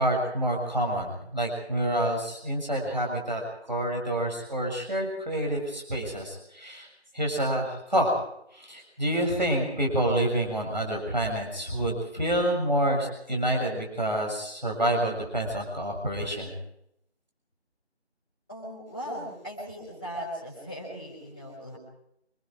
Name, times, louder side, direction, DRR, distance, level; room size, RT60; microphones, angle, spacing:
voice 1, 0.0-3.4 3.7-6.9 7.1-8.1 8.5-16.5, right 1 dB, 40° right, 1 dB, 7.1 m, -28 dB
voice 2, 18.5-21.8, equal, 10° left, -8 dB, 5.3 m, -38 dB
26.5 x 22.0 x 4.9 m, 0.75 s
figure-of-eight pair, 175°, 34 cm